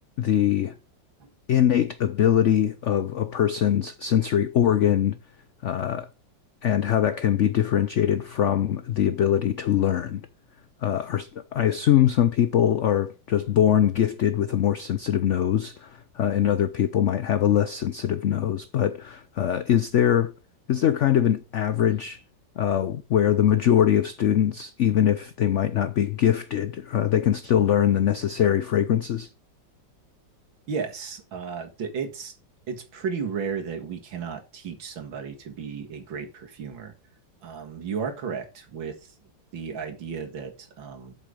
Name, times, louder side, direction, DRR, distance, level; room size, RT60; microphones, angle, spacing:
voice 1, 0.2-0.7 1.5-5.2 5.6-6.1 6.6-10.3 10.8-20.3 20.7-22.2 22.6-29.3, left 10 dB, 90° left, 0.6 m, -22 dB
voice 2, 30.7-32.3 32.7-36.9 37.4-39.1 39.5-41.2, right 6 dB, 90° right, 2.5 m, -34 dB
8.2 x 7.0 x 5.1 m
omnidirectional pair, 2.0 m